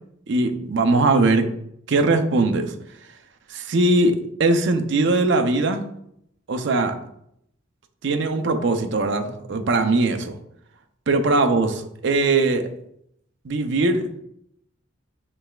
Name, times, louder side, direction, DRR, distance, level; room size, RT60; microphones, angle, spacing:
voice 1, 0.3-1.5 1.9-2.7 3.5-5.8 6.5-7.0 8.0-10.4 11.1-12.7 13.4-14.0, right 2 dB, 65° right, 7 dB, 0.6 m, -20 dB
6.7 x 3.3 x 2.3 m, 0.74 s
head